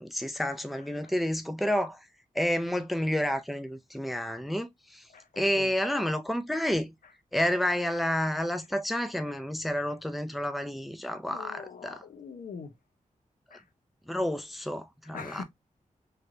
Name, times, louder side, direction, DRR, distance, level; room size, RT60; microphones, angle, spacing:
voice 1, 0.0-2.0 2.3-5.0 5.4-6.9 7.3-12.0 14.1-15.4, equal, ahead, 0.4 m, -30 dB
voice 2, 5.1-5.7 11.3-12.7 13.5-13.6 15.1-15.4, left 5 dB, 80° left, 0.8 m, -42 dB
3.2 x 2.9 x 2.5 m
wide cardioid pair, 140°, 14 cm